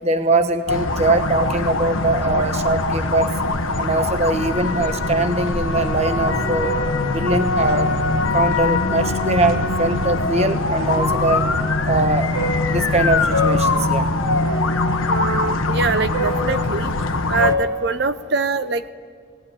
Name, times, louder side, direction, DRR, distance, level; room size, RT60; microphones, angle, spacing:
voice 1, 0.0-3.3 3.8-6.7 7.1-7.9 8.3-11.5 11.8-12.4 12.7-14.2, right 2 dB, 30° right, 7 dB, 1.2 m, -21 dB
sound 1, 0.7-17.5, left 2 dB, 80° left, 1.4 m, -22 dB
sound 2, 6.0-10.3 10.6-18.2, left 2 dB, 90° right, 4.6 m, -30 dB
voice 2, 15.0-16.9 17.3-18.9, right 4 dB, 55° right, 12 dB, 0.9 m, -23 dB
20.0 x 18.5 x 10.0 m, 2.1 s
head